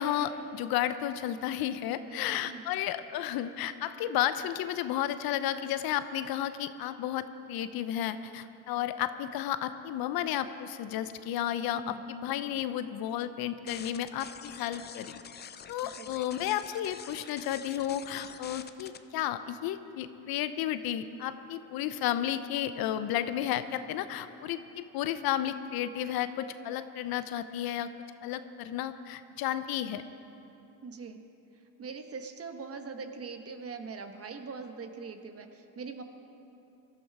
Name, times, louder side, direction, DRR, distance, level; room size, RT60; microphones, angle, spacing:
voice 1, 0.0-15.2 15.7-27.9 28.2-30.0, left 11 dB, 60° left, 12 dB, 0.7 m, -32 dB
voice 2, 2.1-2.7 11.7-12.1 15.8-16.1 30.8-31.2 31.8-36.0, right 5 dB, 35° right, 6 dB, 1.2 m, -42 dB
sound 1, 13.7-19.0, left 7 dB, 25° left, 0.6 m, -46 dB
17.5 x 12.5 x 4.8 m, 2.9 s
supercardioid pair, 95°, 41 cm